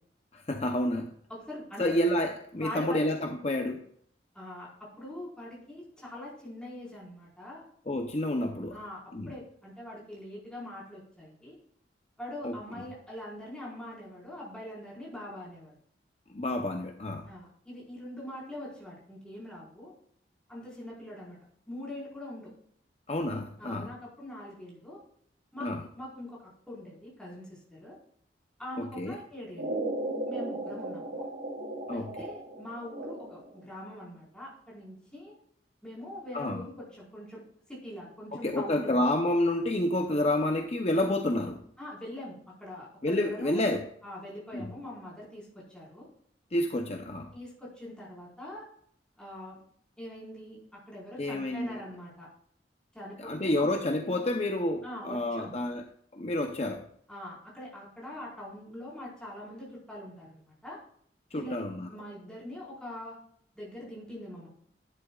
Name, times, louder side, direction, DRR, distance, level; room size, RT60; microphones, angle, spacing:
voice 1, 0.3-1.1 1.8-3.8 7.9-8.8 9.1-9.3 12.4-12.9 16.3-17.3 23.1-23.9 25.6-25.9 28.8-29.2 31.9-32.1 36.3-36.6 38.3-41.6 43.0-43.9 44.5-44.7 46.5-47.3 51.2-51.8 53.2-55.9 56.1-56.9 61.3-61.9, left 1 dB, 35° left, 0.7 m, -29 dB
voice 2, 1.3-1.9 2.6-3.1 4.3-7.7 8.7-11.6 12.2-15.7 17.3-19.9 20.5-21.4 21.7-22.5 23.6-25.0 25.5-28.0 28.6-29.7 30.3-31.3 31.9-35.3 35.8-37.4 37.7-39.0 41.8-43.6 44.0-46.1 47.3-48.6 49.2-49.6 50.0-50.6 50.9-52.3 52.9-53.7 54.8-55.5 57.1-60.8 61.3-63.2 63.5-64.5, left 1 dB, 5° left, 4.4 m, -43 dB
sound 1, 29.6-33.6, right 2 dB, 85° right, 2.8 m, -36 dB
11.0 x 11.0 x 2.4 m
head